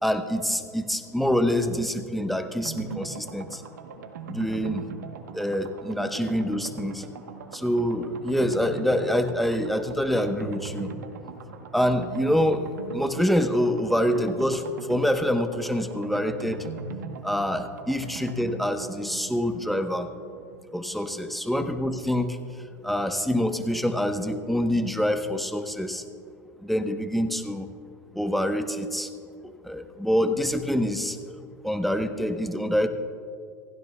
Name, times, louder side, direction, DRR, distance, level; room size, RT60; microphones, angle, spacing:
voice 1, 0.0-3.6 4.3-4.9 5.3-7.0 7.5-10.9 11.7-16.6 17.2-20.1 20.7-22.4 22.8-26.0 26.6-27.7 28.1-29.1 29.6-31.2 31.6-32.9, equal, ahead, 6 dB, 1.1 m, -26 dB
sound 1, 2.6-21.3 21.5-21.6 21.9-22.0, right 5 dB, 80° right, 1.2 m, -40 dB
28.0 x 16.0 x 2.4 m, 2.3 s
hypercardioid pair, 95°, 9 cm